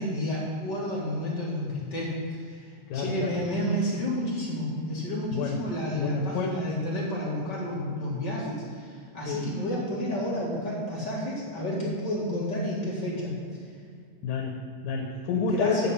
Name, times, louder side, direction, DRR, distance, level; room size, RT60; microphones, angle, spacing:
voice 1, 0.0-2.7 2.9-13.3 15.5-15.9, equal, 35° left, -6 dB, 2.2 m, -30 dB
voice 2, 2.9-3.4 5.3-5.6 5.9-6.6 9.3-9.5 14.2-15.9, left 5 dB, 85° left, 0 dB, 2.5 m, -29 dB
10.0 x 6.9 x 5.6 m, 2.3 s
omnidirectional pair, 3.8 m